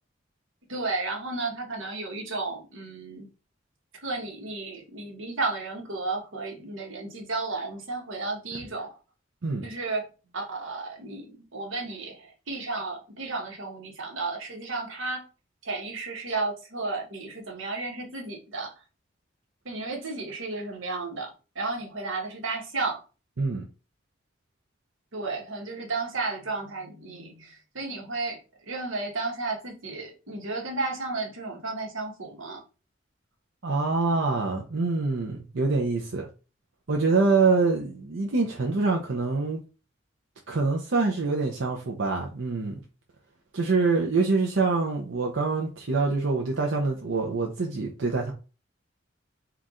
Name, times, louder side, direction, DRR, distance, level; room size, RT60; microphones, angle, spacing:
voice 1, 0.7-3.3 4.0-8.9 9.6-10.1 10.3-11.2 11.5-15.2 15.6-18.7 19.6-23.0 25.1-32.6, right 3 dB, 90° right, 1.3 m, -33 dB
voice 2, 33.6-36.3 36.9-39.6 40.5-42.8 43.5-48.3, right 3 dB, 70° right, 0.7 m, -25 dB
4.5 x 2.5 x 3.7 m
head